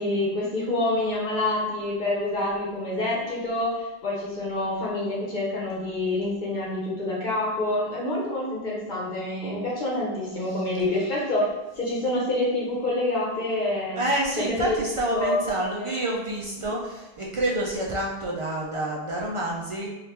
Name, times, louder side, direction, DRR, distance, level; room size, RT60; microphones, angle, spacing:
voice 1, 0.0-11.5 11.8-14.0 14.4-14.8 15.1-15.8, left 1 dB, 55° left, -5 dB, 0.9 m, -27 dB
voice 2, 13.9-19.9, right 1 dB, 50° right, -3 dB, 0.4 m, -28 dB
3.3 x 2.4 x 2.8 m, 1.1 s
omnidirectional pair, 1.0 m